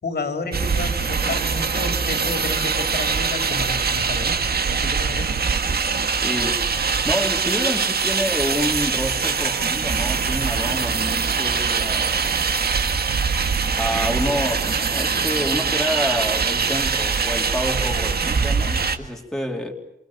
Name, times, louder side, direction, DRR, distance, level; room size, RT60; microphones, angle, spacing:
voice 1, 0.0-5.4, left 3 dB, 75° left, 3.9 m, -31 dB
sound 1, 0.5-19.0, right 5 dB, 70° right, 1.9 m, -23 dB
voice 2, 6.2-6.6 7.0-12.3 13.7-19.7, equal, 5° left, 3.2 m, -28 dB
28.0 x 27.5 x 7.1 m
wide cardioid pair, 155°, 17 cm